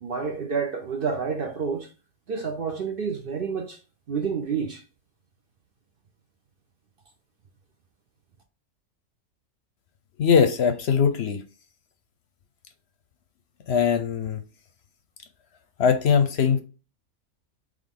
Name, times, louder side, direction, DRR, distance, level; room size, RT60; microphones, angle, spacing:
voice 1, 0.0-1.9 2.3-3.8 4.1-4.8, right 5 dB, 55° right, 0.7 m, -29 dB
voice 2, 10.2-11.4 13.7-14.4 15.8-16.6, left 7 dB, 65° left, 0.8 m, -21 dB
3.7 x 3.3 x 3.6 m
omnidirectional pair, 1.4 m